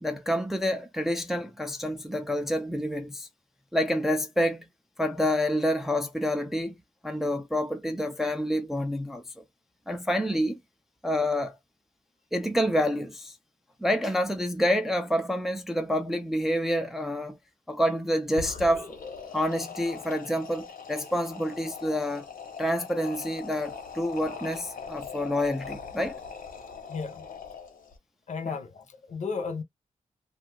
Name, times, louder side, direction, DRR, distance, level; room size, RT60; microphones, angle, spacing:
voice 1, 0.0-3.3 3.7-4.7 5.0-6.8 7.0-9.4 9.9-10.6 11.0-11.6 12.3-13.3 13.8-17.4 17.7-18.9 19.3-22.3 22.6-26.2 28.4-28.6, equal, ahead, 0.3 m, -28 dB
sound 1, 18.3-28.0, left 6 dB, 80° left, 0.9 m, -41 dB
voice 2, 26.9-27.2 28.3-29.6, left 5 dB, 55° left, 0.6 m, -34 dB
2.5 x 2.3 x 3.2 m
wide cardioid pair, 165°, 14 cm